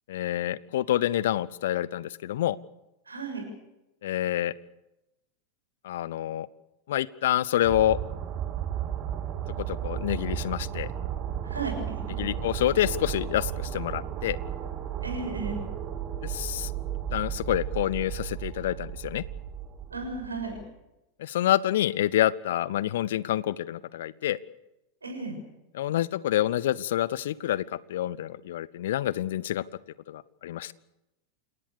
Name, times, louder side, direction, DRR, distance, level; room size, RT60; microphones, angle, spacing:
voice 1, 0.1-2.6 4.0-4.5 5.8-6.5 6.9-8.0 9.6-10.9 12.2-14.4 16.2-16.7 17.1-19.2 21.2-24.4 25.7-29.6 30.1-30.7, left 13 dB, 55° left, 21 dB, 0.7 m, -27 dB
voice 2, 3.0-3.4 11.4-12.0 15.0-15.6 19.9-20.6 25.0-25.4, right 3 dB, 75° right, 5 dB, 7.0 m, -34 dB
sound 1, 7.6-20.6, right 10 dB, 35° right, 2.4 m, -34 dB
28.5 x 18.0 x 6.8 m, 0.94 s
figure-of-eight pair, 90°, 0 cm